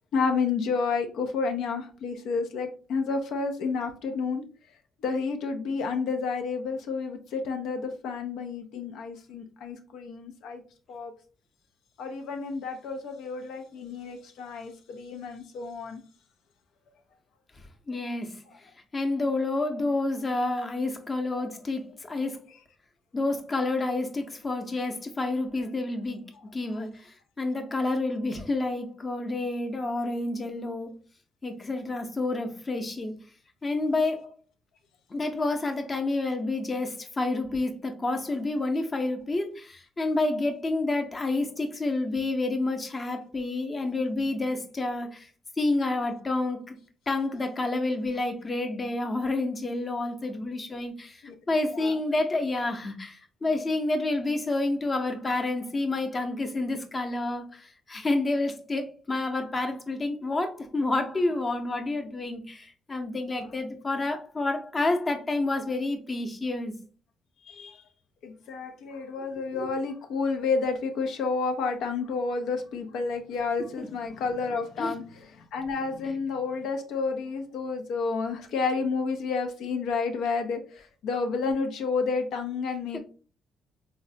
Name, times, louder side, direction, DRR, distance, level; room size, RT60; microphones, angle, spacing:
voice 1, 0.1-4.4 5.0-10.6 10.9-11.1 12.0-16.0 21.3-21.5 51.2-51.3 51.7-52.0 63.4-63.5 67.4-67.9 68.2-83.0, left 4 dB, 80° left, 0.4 m, -30 dB
voice 2, 17.9-18.4 18.9-22.5 23.1-26.2 26.5-31.0 31.4-33.1 33.6-34.3 35.1-45.3 45.6-46.8 47.1-51.2 51.5-66.7 73.8-73.9 74.8-74.9 82.9-83.0, left 2 dB, 30° left, 0.6 m, -29 dB
3.6 x 2.1 x 2.5 m
cardioid pair, 90°, 0 cm